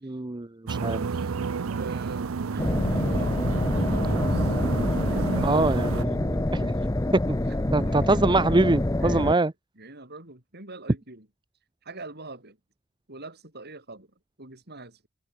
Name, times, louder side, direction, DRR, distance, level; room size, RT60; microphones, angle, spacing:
voice 1, 0.0-1.1 5.1-6.7 7.3-7.4 7.7-9.5, right 2 dB, 20° right, 0.7 m, -24 dB
sound 1, 0.7-6.0, right 5 dB, 75° right, 0.5 m, -31 dB
voice 2, 1.7-3.4 3.7-4.5 4.9-5.7 7.2-8.3 9.0-9.5 9.8-11.3 11.8-12.6 13.1-15.1, right 2 dB, 50° right, 7.5 m, -44 dB
sound 2, 2.6-9.3, left 1 dB, 15° left, 0.8 m, -26 dB
head